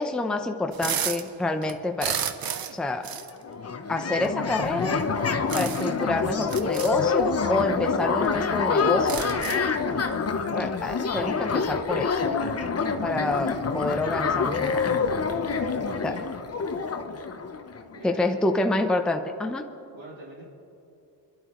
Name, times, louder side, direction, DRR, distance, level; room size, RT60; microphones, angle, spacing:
voice 1, 0.0-2.2 2.7-3.1 3.9-5.0 5.5-9.2 10.5-12.3 13.0-14.8 16.0-16.2 18.0-19.7, left 2 dB, ahead, 5 dB, 0.6 m, -27 dB
sound 1, 0.7-1.3 1.6-2.8 3.0-3.3 4.2-4.3 5.5-6.0 6.4-6.9 7.9-8.0 8.2-8.3 8.8-9.7, right 8 dB, 50° right, 0.8 m, -31 dB
sound 2, 3.2-3.3 3.4-18.0, left 5 dB, 30° left, 0.8 m, -27 dB
voice 2, 15.6-16.2 17.9-18.7 19.9-20.4, right 1 dB, 80° right, -8 dB, 3.8 m, -45 dB
24.5 x 11.5 x 3.1 m, 2.7 s
cardioid pair, 80°, 46 cm